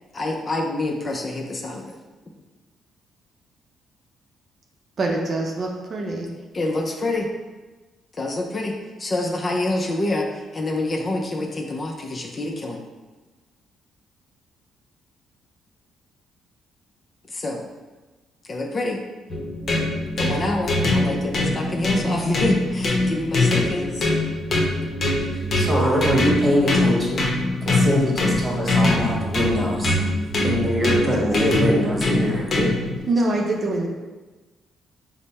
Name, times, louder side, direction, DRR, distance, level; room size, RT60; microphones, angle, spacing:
voice 1, 0.1-2.0 6.5-7.3 8.1-12.8 17.3-17.7 18.5-19.0 20.2-24.1, left 2 dB, 35° left, 1 dB, 0.5 m, -27 dB
voice 2, 5.0-6.3 31.1-31.2 33.1-33.9, right 2 dB, 50° right, 0 dB, 0.6 m, -24 dB
sound 1, 19.3-33.0, left 2 dB, 50° left, 0.9 m, -23 dB
voice 3, 25.5-27.2 27.6-29.9 30.4-32.7, equal, 10° right, -3 dB, 1.3 m, -22 dB
5.2 x 2.1 x 4.1 m, 1.2 s
cardioid pair, 90°, 0 cm